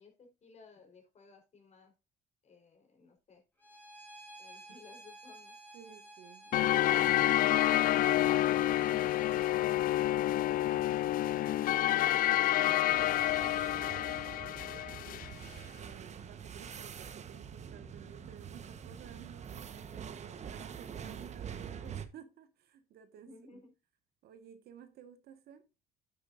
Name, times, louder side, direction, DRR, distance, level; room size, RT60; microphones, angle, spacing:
voice 1, 0.0-1.9 2.4-3.4 4.4-5.5 23.2-23.7, left 4 dB, 40° left, 4.0 m, -58 dB
Bowed string instrument, 3.6-9.5, right 2 dB, 10° left, 3.9 m, -53 dB
voice 2, 5.7-15.0 15.7-23.6 24.2-25.6, right 8 dB, 70° right, 1.6 m, -55 dB
sound 1, 6.5-15.3, left 14 dB, 55° left, 0.4 m, -28 dB
sound 2, 12.9-22.1, right 7 dB, 45° right, 1.1 m, -45 dB
9.1 x 8.8 x 2.5 m
cardioid pair, 110°, 17 cm